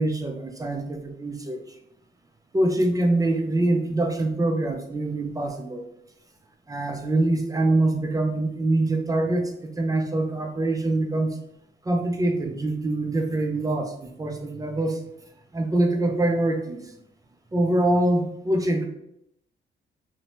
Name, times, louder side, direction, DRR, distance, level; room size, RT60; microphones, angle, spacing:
voice 1, 0.0-1.7 2.5-5.9 6.7-11.4 11.8-15.0 15.5-16.9 17.5-18.9, right 2 dB, 15° right, 4 dB, 0.4 m, -24 dB
2.7 x 2.0 x 2.9 m, 0.78 s
cardioid pair, 90°, 20 cm